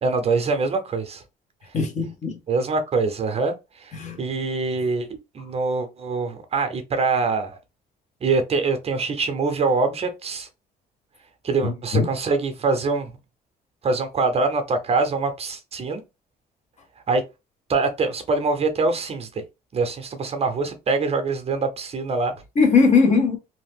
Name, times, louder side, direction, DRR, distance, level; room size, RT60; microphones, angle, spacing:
voice 1, 0.0-1.2 2.5-5.1 5.3-7.6 8.2-10.5 11.4-13.1 13.8-16.0 17.1-17.2 17.7-19.4 19.7-22.3, right 3 dB, 35° right, 0.7 m, -24 dB
voice 2, 1.7-2.4 3.9-4.2 11.6-12.1 22.6-23.4, left 4 dB, 45° left, 1.0 m, -19 dB
2.7 x 2.1 x 3.5 m
cardioid pair, 110°, 17 cm